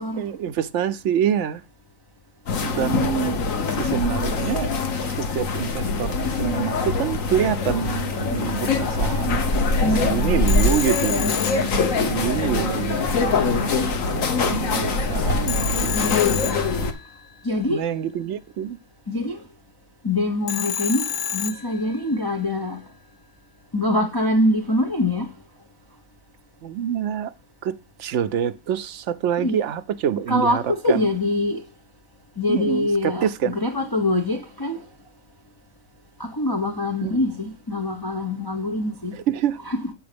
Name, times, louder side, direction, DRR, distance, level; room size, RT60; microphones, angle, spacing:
voice 1, 0.2-1.6 2.6-3.4 3.7-4.7 5.2-9.5 10.0-16.2 17.7-18.8 26.6-27.3 27.6-31.1 32.5-33.6 37.0-37.2 39.1-39.6, right 9 dB, 70° right, 0.9 m, -26 dB
sound 1, 2.5-16.9, left 4 dB, 85° left, 1.5 m, -23 dB
voice 2, 9.8-10.8 11.2-12.0 15.9-16.3 17.4-17.8 19.1-19.4 20.0-21.1 21.3-22.8 23.7-25.3 29.4-29.6 30.3-31.6 32.4-34.8 36.2-39.2 39.7-39.8, left 1 dB, 20° left, 0.9 m, -24 dB
Telephone, 10.5-12.4 15.5-17.3 20.5-22.1, left 8 dB, 55° left, 0.5 m, -29 dB
8.6 x 5.5 x 5.1 m
omnidirectional pair, 1.3 m